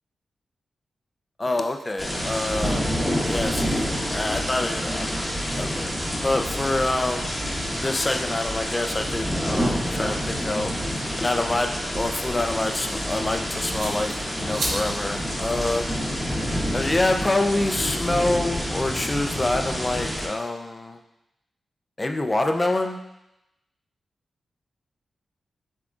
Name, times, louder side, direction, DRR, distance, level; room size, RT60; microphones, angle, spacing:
voice 1, 1.4-3.0 3.2-5.2 5.5-7.4 7.8-15.9 16.7-21.0 22.0-23.0, left 2 dB, 30° left, 5 dB, 0.5 m, -26 dB
sound 1, 2.0-20.3, equal, 5° left, 1.1 m, -28 dB
sound 2, 11.7-18.6, right 1 dB, 75° right, 0.9 m, -38 dB
5.8 x 3.6 x 2.5 m, 0.88 s
cardioid pair, 50°, 0 cm